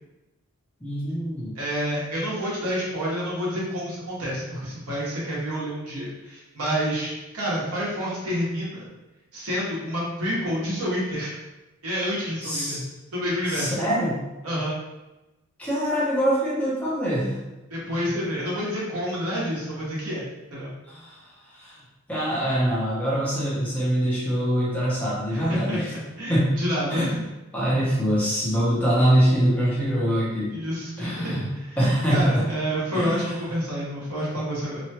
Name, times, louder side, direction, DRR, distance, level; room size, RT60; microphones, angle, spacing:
voice 1, 0.8-1.5 12.4-12.8 13.5-14.2 15.6-17.4 20.9-21.2 21.5-21.8 22.1-25.9 26.3-26.6 27.0-27.2 27.5-30.5 31.0-32.5 32.9-33.3, equal, 5° left, -8 dB, 0.6 m, -24 dB
voice 2, 1.5-8.9 9.3-11.4 11.8-12.8 13.1-13.8 14.4-14.8 17.7-20.2 20.5-20.7 25.3-27.3 30.5-31.8 32.1-34.8, equal, 85° right, -7 dB, 1.1 m, -28 dB
2.9 x 2.2 x 2.8 m, 1.0 s
head